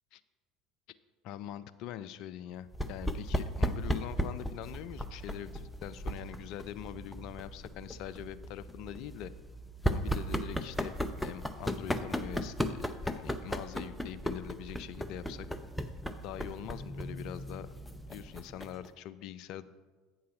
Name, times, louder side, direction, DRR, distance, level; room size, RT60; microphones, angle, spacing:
voice 1, 1.2-9.3 9.9-15.5 16.2-17.7 18.1-19.6, left 11 dB, 55° left, 14 dB, 0.4 m, -43 dB
sound 1, 2.7-18.9, equal, 5° left, 0.6 m, -36 dB
8.5 x 4.7 x 5.6 m, 1.3 s
figure-of-eight pair, 65°, 0 cm